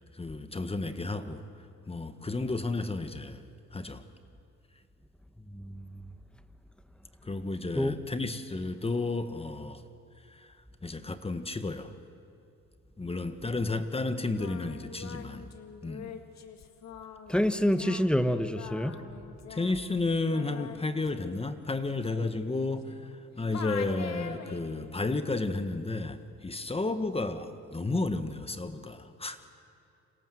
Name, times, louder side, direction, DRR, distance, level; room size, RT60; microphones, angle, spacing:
voice 1, 0.1-1.4 1.9-3.4 3.7-4.1 7.2-9.8 10.3-10.5 10.8-12.0 13.0-15.5 15.8-16.2 19.5-29.4, left 3 dB, 20° left, 1.5 m, -32 dB
voice 2, 5.4-6.1 7.7-8.0 17.3-19.0, equal, 5° left, 1.4 m, -27 dB
Singing, 14.2-23.2 23.5-24.9, left 7 dB, 60° left, 2.3 m, -45 dB
28.5 x 26.5 x 7.8 m
cardioid pair, 90°, 30 cm